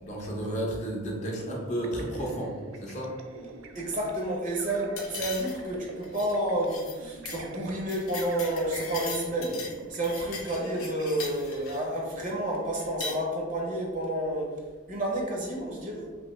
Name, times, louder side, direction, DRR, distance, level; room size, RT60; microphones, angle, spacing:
voice 1, 0.0-2.5 2.8-3.1, right 1 dB, 35° left, -2 dB, 0.6 m, -32 dB
sound 1, 1.2-11.7, right 3 dB, 75° right, 0.4 m, -45 dB
voice 2, 3.7-9.6 9.9-14.5 14.9-16.1, right 1 dB, 35° right, -1 dB, 0.6 m, -30 dB
sound 2, 5.0-5.7 6.0-6.3 6.7-7.0 7.3-7.4 7.7-9.8 10.0-11.8 12.8-13.2, left 4 dB, 85° left, 0.6 m, -39 dB
3.1 x 2.9 x 3.0 m, 1.4 s
head